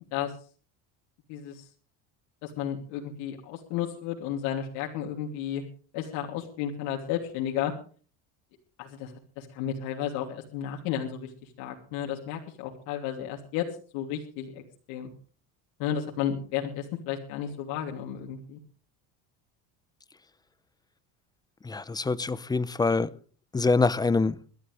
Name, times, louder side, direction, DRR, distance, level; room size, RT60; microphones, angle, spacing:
voice 1, 1.3-1.7 2.4-5.6 5.9-7.7 8.8-11.3 11.6-13.7 13.9-14.6 14.9-15.1 15.8-18.6, left 10 dB, 80° left, 3.2 m, -33 dB
voice 2, 21.6-23.1 23.5-24.4, left 3 dB, 10° left, 0.6 m, -25 dB
22.0 x 13.0 x 3.4 m
cardioid pair, 130°, 40 cm